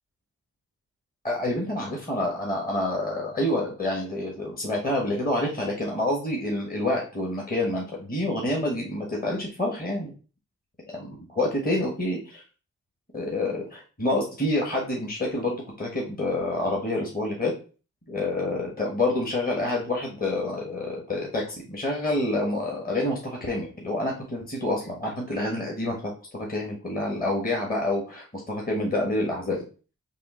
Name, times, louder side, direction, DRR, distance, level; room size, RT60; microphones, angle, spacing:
voice 1, 1.2-10.1 10.9-12.4 13.1-17.5 18.1-29.6, left 1 dB, 25° left, -1 dB, 1.1 m, -28 dB
3.6 x 2.4 x 3.6 m, 0.37 s
cardioid pair, 50°, 33 cm